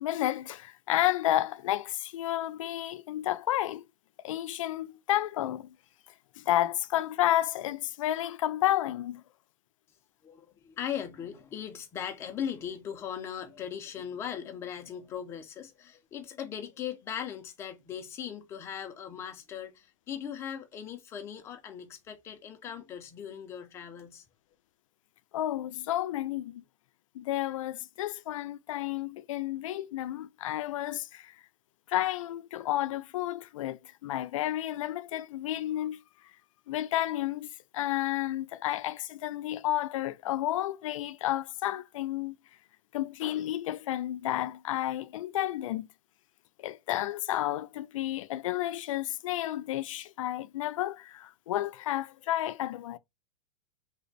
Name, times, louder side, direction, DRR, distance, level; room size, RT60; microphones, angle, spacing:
voice 1, 0.0-3.8 4.2-5.7 6.4-9.2 25.3-26.6 27.1-31.4 31.9-36.0 36.7-42.3 42.9-45.9 46.6-53.0, left 13 dB, 75° left, 0.4 m, -31 dB
voice 2, 10.2-24.2, left 9 dB, 15° left, 0.5 m, -39 dB
3.3 x 2.1 x 3.9 m
supercardioid pair, 165°, 17 cm